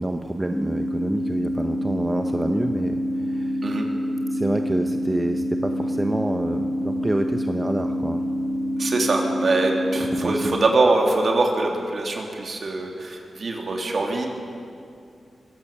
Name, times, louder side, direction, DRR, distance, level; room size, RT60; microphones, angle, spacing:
voice 1, 0.0-3.0 3.3-3.6 4.3-8.2 10.1-10.6, right 1 dB, 20° right, 5 dB, 1.0 m, -27 dB
sound 1, 0.5-10.5, equal, 15° left, 1.8 m, -26 dB
voice 2, 8.8-14.3, right 2 dB, 60° right, 1 dB, 3.2 m, -23 dB
22.5 x 16.5 x 7.4 m, 2.4 s
cardioid pair, 70°, 0 cm